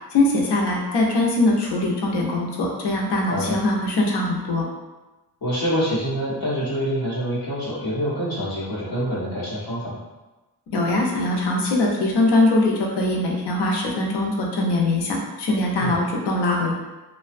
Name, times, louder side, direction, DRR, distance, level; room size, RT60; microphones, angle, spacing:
voice 1, 0.1-4.6 10.7-16.7, left 2 dB, 85° left, -1 dB, 0.6 m, -22 dB
voice 2, 5.4-10.0 15.8-16.0, equal, 60° left, -7 dB, 1.0 m, -26 dB
2.5 x 2.2 x 2.4 m, 1.1 s
wide cardioid pair, 175°, 40 cm